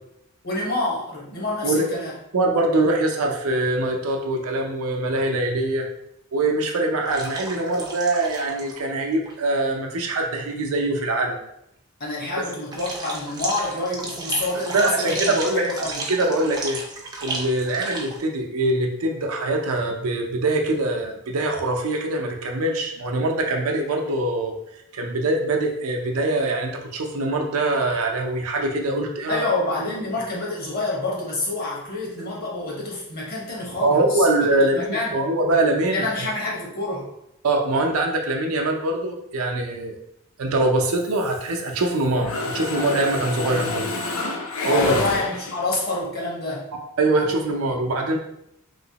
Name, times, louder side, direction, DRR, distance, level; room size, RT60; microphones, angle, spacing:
voice 1, 0.4-2.1 12.0-16.0 29.3-34.5 34.7-35.1 35.9-37.1 44.7-46.6, left 2 dB, 45° left, -3 dB, 1.0 m, -27 dB
voice 2, 2.3-5.9 6.3-11.4 14.7-16.8 17.2-24.5 24.9-29.5 33.8-36.0 37.4-40.0 40.4-43.9 44.6-45.0 47.0-48.2, right 2 dB, 80° right, 2 dB, 0.6 m, -23 dB
sound 1, 7.1-8.8 9.1-9.3 12.7-18.2, right 2 dB, 20° right, 0.4 m, -33 dB
Mechanisms, 41.0-41.9 42.2-45.8, left 3 dB, 75° left, 0.4 m, -29 dB
3.2 x 2.9 x 2.8 m, 0.79 s
head